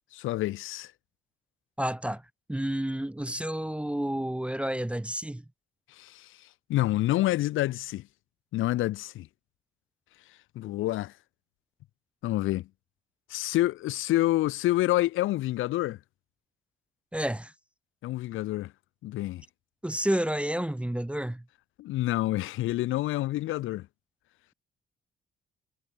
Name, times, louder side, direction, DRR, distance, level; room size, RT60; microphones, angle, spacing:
voice 1, 0.1-0.9 6.0-6.3 6.7-8.1 8.5-9.3 10.6-11.1 12.2-12.7 13.3-16.0 18.0-18.7 19.0-19.4 21.8-23.9, left 16 dB, 90° left, 1.9 m, -28 dB
voice 2, 1.8-2.2 2.5-5.4 17.1-17.5 19.8-21.4, right 1 dB, 5° right, 0.7 m, -30 dB
cardioid pair, 90°, 20 cm